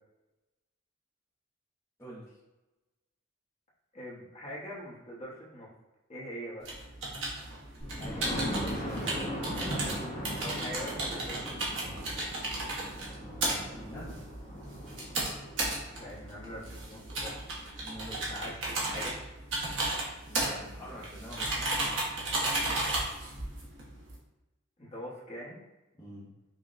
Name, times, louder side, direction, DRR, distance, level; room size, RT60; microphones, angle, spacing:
voice 1, 2.0-2.4 7.9-9.1 13.1-14.3 17.8-18.7 20.3-23.0 26.0-26.3, equal, 15° left, -9 dB, 0.6 m, -46 dB
voice 2, 3.9-5.7 6.1-6.7 10.4-11.7 15.9-17.4 18.1-19.2 20.4-21.0 24.8-25.6, equal, 35° left, -6 dB, 1.0 m, -43 dB
sound 1, 6.6-24.2, right 2 dB, 65° right, 1.0 m, -34 dB
Thunder, 7.8-17.5 18.1-18.2 18.6-18.7 18.9-19.0, equal, 55° left, 1.4 m, -39 dB
5.5 x 2.2 x 2.5 m, 1.0 s
head